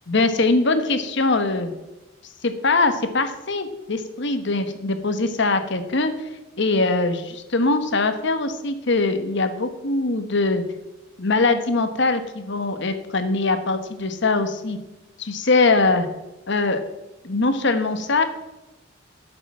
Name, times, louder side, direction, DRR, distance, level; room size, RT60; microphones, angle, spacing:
voice 1, 0.1-1.7 2.4-6.3 6.6-10.6 11.2-14.8 15.2-16.1 16.5-16.8 17.2-18.2, left 3 dB, 60° left, 9 dB, 1.2 m, -22 dB
11.5 x 6.8 x 6.0 m, 1.0 s
head